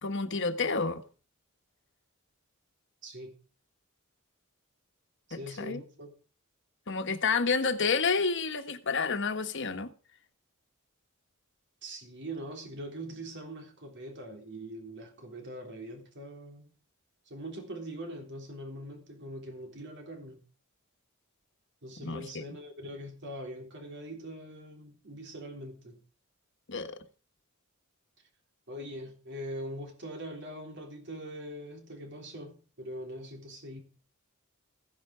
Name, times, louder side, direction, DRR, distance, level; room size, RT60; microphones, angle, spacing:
voice 1, 0.0-1.0 5.3-5.8 6.9-9.9 22.0-22.4 26.7-27.0, left 4 dB, 60° left, 1.5 m, -29 dB
voice 2, 3.0-3.3 5.3-6.1 11.8-16.7 17.3-20.4 21.8-26.0 28.7-33.8, right 1 dB, 55° right, 3.6 m, -42 dB
15.5 x 10.5 x 4.9 m
head